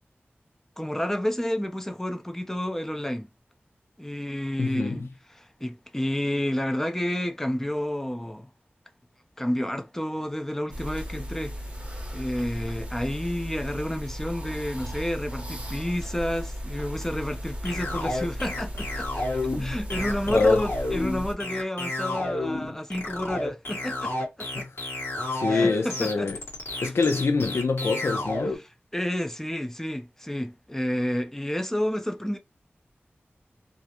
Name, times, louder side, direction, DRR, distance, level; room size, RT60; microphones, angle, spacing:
voice 1, 0.8-3.3 4.0-8.5 9.4-11.5 12.1-19.2 19.6-24.1 24.4-24.7 25.5-26.3 26.8-26.9 28.6-32.4, left 1 dB, 10° left, 0.5 m, -30 dB
voice 2, 4.6-5.0 20.3-20.7 24.5-24.7 25.3-26.4 26.8-28.6, left 4 dB, 90° left, 0.5 m, -25 dB
sound 1, 10.7-21.3, equal, 30° right, 0.8 m, -36 dB
sound 2, 17.6-28.6, left 2 dB, 65° left, 1.1 m, -31 dB
2.4 x 2.0 x 2.8 m
wide cardioid pair, 60°, 4 cm